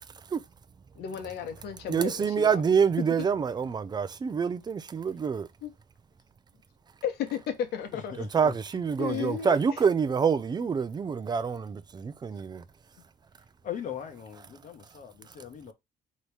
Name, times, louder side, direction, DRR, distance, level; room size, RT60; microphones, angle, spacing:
voice 1, 1.0-2.6 5.6-5.7 7.0-8.1 9.0-9.8, left 8 dB, 70° left, 1.1 m, -34 dB
voice 2, 1.9-5.5 8.2-12.6, right 6 dB, 25° right, 0.5 m, -26 dB
voice 3, 8.2-8.5 13.6-15.7, left 9 dB, 50° left, 1.0 m, -39 dB
4.0 x 3.1 x 3.4 m
cardioid pair, 110°, 17 cm